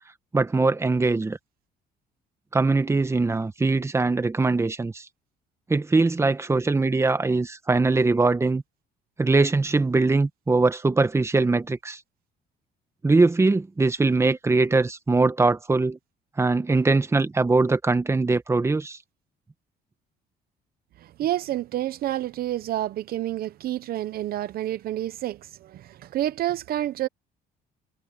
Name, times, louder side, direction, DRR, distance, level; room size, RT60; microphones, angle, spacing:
voice 1, 0.3-1.4 2.5-5.0 5.7-8.6 9.2-12.0 13.0-16.0 16.4-19.0, right 3 dB, 15° right, 1.3 m, -22 dB
voice 2, 21.0-27.1, right 13 dB, 60° right, 0.8 m, -29 dB
cardioid pair, 110°, 17 cm